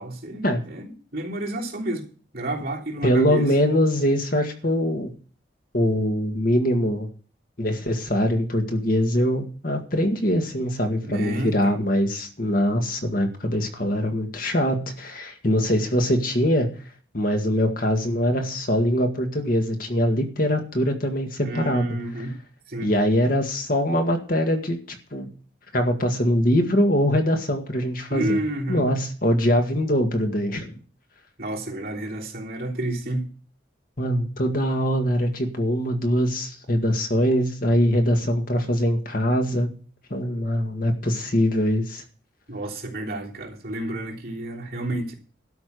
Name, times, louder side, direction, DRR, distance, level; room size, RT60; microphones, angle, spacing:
voice 1, 0.0-2.1 2.3-3.5 11.0-11.7 21.4-22.3 22.7-22.9 28.1-28.8 31.4-33.3 42.5-45.1, right 1 dB, 50° right, 3.4 m, -30 dB
voice 2, 3.0-5.1 5.7-7.1 7.6-16.7 17.1-22.3 22.8-24.8 25.1-25.3 25.7-28.4 28.7-30.7 34.0-39.7 40.1-42.0, equal, 50° left, 1.9 m, -23 dB
12.5 x 5.9 x 8.2 m
head